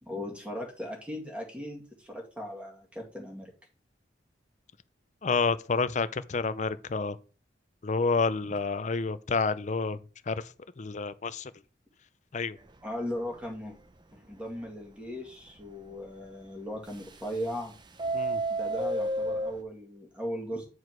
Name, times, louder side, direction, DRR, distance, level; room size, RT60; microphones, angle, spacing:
voice 1, 0.0-3.5 12.8-13.8 14.1-17.7 18.5-20.7, equal, 5° right, 2.2 m, -38 dB
voice 2, 5.2-7.2 7.8-10.0 10.3-10.5 10.8-11.5 12.3-12.6 18.1-18.4, left 4 dB, 40° left, 0.5 m, -29 dB
Subway metro underground, 12.6-12.9 13.3-13.4 13.7-13.8 14.3-14.4 16.9-17.6 17.9-19.6, right 1 dB, 25° right, 0.6 m, -31 dB
9.6 x 4.8 x 4.6 m
head